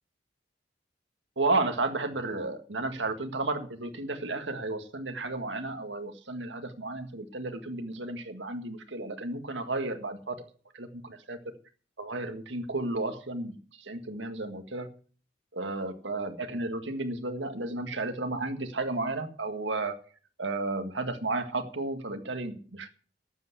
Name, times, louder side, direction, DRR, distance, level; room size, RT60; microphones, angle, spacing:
voice 1, 1.4-10.4 10.7-11.4 12.0-14.9 15.5-20.0 20.4-22.9, right 2 dB, 80° right, 7 dB, 1.9 m, -33 dB
12.0 x 8.2 x 8.1 m, 0.41 s
head